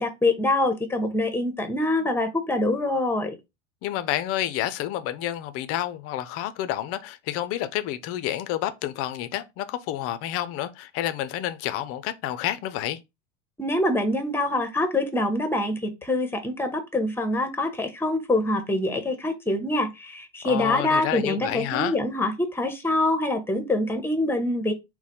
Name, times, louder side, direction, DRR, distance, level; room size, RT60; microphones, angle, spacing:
voice 1, 0.0-3.4 13.6-24.7, left 2 dB, 5° left, 0.8 m, -25 dB
voice 2, 3.8-13.0 20.4-21.9, left 12 dB, 40° left, 0.5 m, -29 dB
4.1 x 2.1 x 4.0 m
figure-of-eight pair, 75°, 37 cm